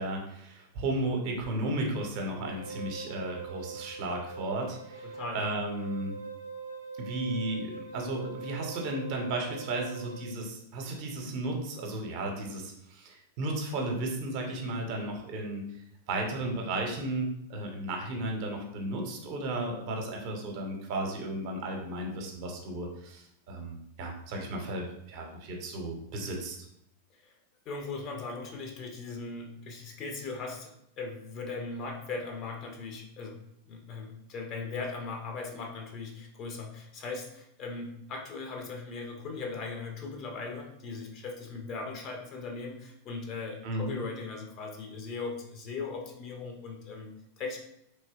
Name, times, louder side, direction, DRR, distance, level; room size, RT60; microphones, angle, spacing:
voice 1, 0.0-6.2 7.0-15.7 16.1-26.7 43.6-44.0, right 2 dB, 45° right, 1 dB, 0.6 m, -34 dB
Wind instrument woodwind instrument, 2.4-10.3, right 4 dB, 85° right, 0.4 m, -42 dB
voice 2, 5.0-5.5 27.2-27.3 27.7-33.4 33.7-47.6, left 4 dB, 35° left, 1 dB, 0.5 m, -39 dB
3.2 x 2.7 x 2.3 m, 0.78 s
figure-of-eight pair, 90°, 0 cm